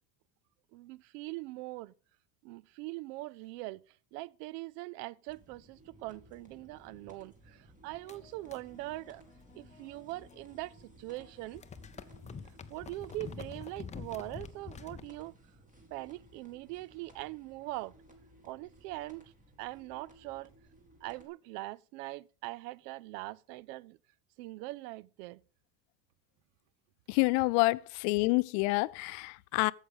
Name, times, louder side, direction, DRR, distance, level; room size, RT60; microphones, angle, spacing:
voice 1, 0.7-1.9 2.4-3.8 4.1-9.2 9.5-11.6 12.7-15.3 15.9-17.9 18.4-19.3 19.6-20.5 21.0-24.0 24.4-25.4, right 19 dB, 80° right, 0.5 m, -42 dB
sound 1, 5.3-21.3, right 1 dB, 15° right, 2.0 m, -58 dB
sound 2, 8.0-10.7 11.0-15.1, left 6 dB, 15° left, 0.4 m, -48 dB
voice 2, 27.1-29.7, left 25 dB, 70° left, 0.5 m, -28 dB
8.0 x 7.4 x 5.3 m
supercardioid pair, 110°, 47 cm